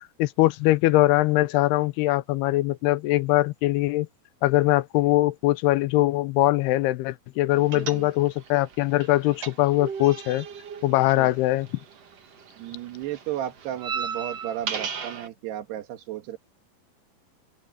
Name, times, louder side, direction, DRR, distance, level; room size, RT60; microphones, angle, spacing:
voice 1, 0.2-4.1 4.4-10.5 10.8-11.7, left 17 dB, 85° left, 2.7 m, -22 dB
voice 2, 7.5-8.1 11.2-11.3 12.6-16.4, right 12 dB, 85° right, 3.6 m, -34 dB
sound 1, 7.7-8.5 8.7-12.1 12.4-15.3, right 6 dB, 45° right, 2.7 m, -35 dB
open air
omnidirectional pair, 4.6 m